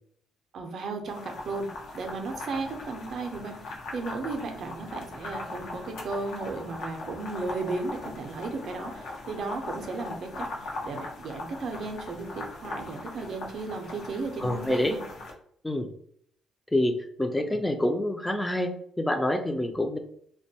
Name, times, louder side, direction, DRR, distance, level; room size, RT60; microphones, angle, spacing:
voice 1, 0.5-1.7 1.9-15.0, right 3 dB, 55° right, 4 dB, 0.5 m, -35 dB
sound 1, 1.1-15.3, left 2 dB, 80° left, 0.6 m, -40 dB
voice 2, 14.4-14.9 15.6-15.9 16.7-20.0, left 1 dB, 10° left, 6 dB, 0.3 m, -27 dB
2.5 x 2.2 x 2.7 m, 0.65 s
cardioid pair, 125°, 0 cm